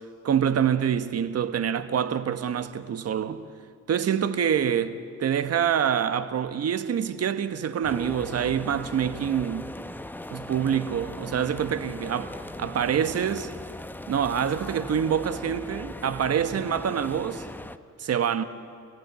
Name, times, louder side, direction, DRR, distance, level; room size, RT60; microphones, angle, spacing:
voice 1, 0.2-3.4 3.9-9.7 10.3-13.5 14.1-17.4 18.0-18.4, right 8 dB, 55° right, 1.3 m, -26 dB
sound 1, 7.8-17.8, left 1 dB, 5° left, 0.8 m, -39 dB
29.0 x 16.5 x 8.3 m
cardioid pair, 90°, 30 cm